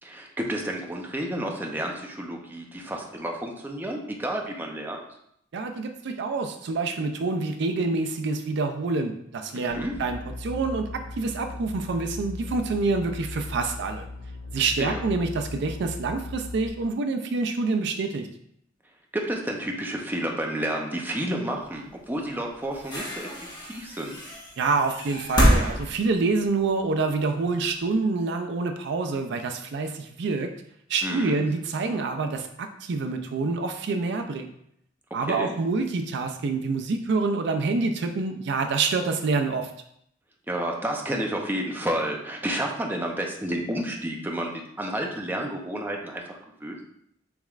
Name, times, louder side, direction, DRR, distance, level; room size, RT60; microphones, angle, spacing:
voice 1, 0.0-5.0 9.5-9.9 14.6-15.0 19.1-23.3 23.7-24.3 31.0-31.4 35.3-35.5 40.5-46.8, right 1 dB, 10° right, 1 dB, 0.6 m, -31 dB
voice 2, 5.5-10.9 11.2-14.1 14.5-18.3 24.6-30.5 30.9-34.5 35.1-39.7, right 3 dB, 65° right, 6 dB, 0.4 m, -27 dB
sound 1, 9.7-16.7, left 2 dB, 85° left, 1.2 m, -38 dB
sound 2, 21.9-22.0 22.6-27.0 27.9-28.0, equal, 20° left, 1.3 m, -26 dB
6.9 x 3.1 x 2.4 m, 0.73 s
head